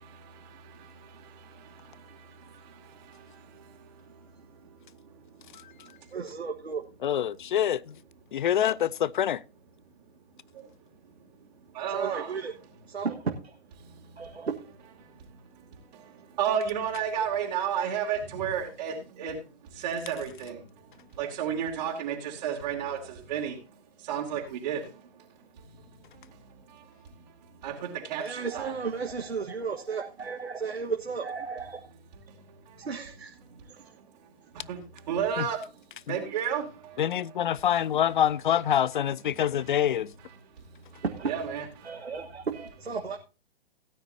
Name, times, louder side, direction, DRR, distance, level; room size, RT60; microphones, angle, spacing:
voice 1, 0.0-6.0 10.5-10.7 11.1-11.2 11.7-12.4 13.8-14.5 15.0-25.7 26.0-28.7 32.3-32.9 33.5-34.3 34.5-37.7 38.0-38.2 38.9-39.1 39.5-39.8 40.2-40.6 40.9-42.0, right 8 dB, 45° right, 2.7 m, -35 dB
voice 2, 1.8-2.2 3.0-3.1 6.1-6.8 11.9-12.5 12.9-13.5 14.2-14.5 28.2-31.8 32.8-33.4 33.6-33.8 41.0-41.4 41.8-43.2, right 5 dB, 75° right, 1.5 m, -34 dB
voice 3, 7.0-7.8 8.3-9.4 35.4-35.5 37.0-40.1, left 10 dB, 50° left, 0.5 m, -25 dB
17.5 x 9.5 x 2.7 m
figure-of-eight pair, 125°, 32 cm